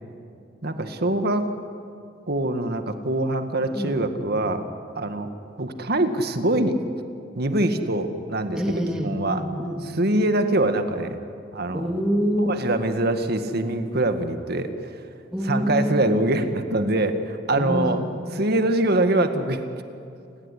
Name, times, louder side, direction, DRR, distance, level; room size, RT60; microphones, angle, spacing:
voice 1, 0.6-1.5 2.3-4.6 5.0-5.3 5.6-6.8 7.4-8.6 9.0-9.4 9.9-11.2 11.5-11.9 12.4-14.7 15.4-18.0 18.3-19.6, right 1 dB, 55° right, 8 dB, 1.9 m, -23 dB
voice 2, 8.5-9.8 11.7-12.5 15.3-16.1 17.6-17.9, equal, 5° right, 1 dB, 3.1 m, -26 dB
29.5 x 19.0 x 9.9 m, 2.5 s
head